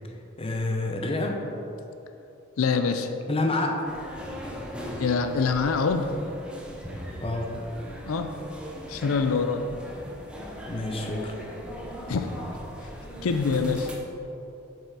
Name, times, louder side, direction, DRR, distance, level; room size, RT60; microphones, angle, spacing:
voice 1, 0.4-1.4 3.3-3.9 7.2-7.6 10.7-11.3, left 2 dB, 30° left, 3 dB, 0.7 m, -28 dB
voice 2, 2.6-3.1 5.0-6.2 8.0-8.4 8.9-9.7 12.1-12.3 13.2-13.9, left 5 dB, 85° left, 7 dB, 0.5 m, -25 dB
sound 1, 3.9-14.0, equal, 5° right, 0.8 m, -39 dB
7.3 x 5.6 x 4.7 m, 2.9 s
head